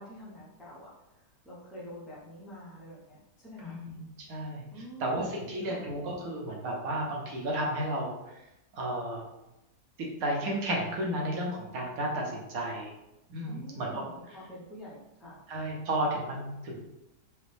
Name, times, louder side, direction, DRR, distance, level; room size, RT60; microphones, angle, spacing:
voice 1, 0.0-3.8 4.7-5.9 13.4-15.4, equal, ahead, -8 dB, 0.3 m, -47 dB
voice 2, 3.6-4.0 4.3-4.7 5.0-8.1 8.7-9.3 10.0-12.9 13.3-14.1 15.5-16.8, right 1 dB, 65° right, -1 dB, 1.2 m, -32 dB
5.0 x 2.1 x 3.3 m, 0.91 s
omnidirectional pair, 1.8 m